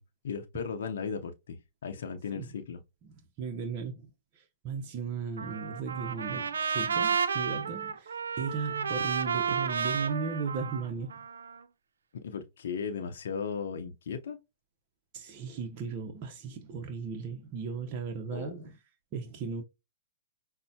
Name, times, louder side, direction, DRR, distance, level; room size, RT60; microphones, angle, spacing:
voice 1, 0.2-1.6 1.8-2.8 12.2-14.4 18.3-18.7, left 6 dB, 70° left, 0.6 m, -36 dB
voice 2, 3.0-11.1 15.1-18.7 19.1-19.6, right 5 dB, 40° right, 0.6 m, -36 dB
Trumpet, 5.4-11.6, right 6 dB, 85° right, 0.4 m, -32 dB
5.4 x 2.1 x 2.7 m
hypercardioid pair, 130°, 0 cm